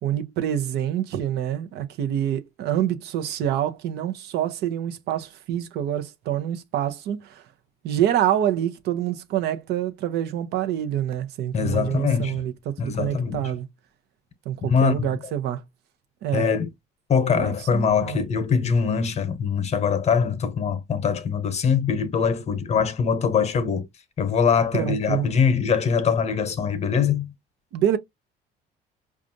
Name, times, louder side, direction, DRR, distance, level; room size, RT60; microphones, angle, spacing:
voice 1, 0.0-7.4 7.8-13.7 14.5-15.6 16.2-16.5 17.3-18.2 24.7-25.3 27.7-28.0, right 11 dB, 80° right, 0.7 m, -26 dB
voice 2, 11.5-12.4 12.8-13.4 14.6-15.1 16.3-16.7 17.1-23.9 24.2-27.3, left 6 dB, 40° left, 0.9 m, -23 dB
5.1 x 2.4 x 2.6 m
cardioid pair, 110°, 17 cm